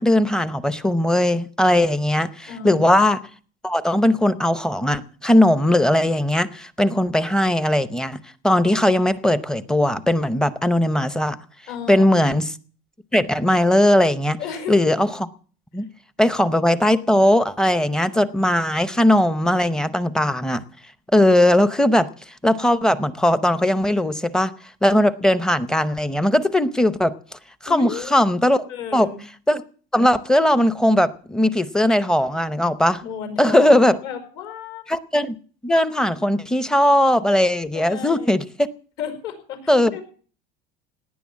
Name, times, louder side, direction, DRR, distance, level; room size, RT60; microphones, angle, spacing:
voice 1, 0.0-3.2 3.6-8.2 8.4-11.4 11.9-12.5 13.1-14.4 14.7-15.3 15.7-15.9 16.2-20.6 21.1-22.1 22.4-24.5 24.8-27.1 27.6-28.7 28.9-29.1 29.5-29.6 29.9-33.0 33.4-34.0 34.9-35.4 35.6-38.4 39.7-40.0, left 1 dB, 5° left, 14 dB, 0.7 m, -19 dB
voice 2, 2.5-2.9 11.7-12.1 14.4-14.8 15.8-15.9 27.7-28.1 28.7-29.2 33.0-34.8 37.7-38.3 39.0-40.0, left 7 dB, 60° left, 7 dB, 5.0 m, -33 dB
18.0 x 10.0 x 7.5 m, 0.43 s
cardioid pair, 160°, 20 cm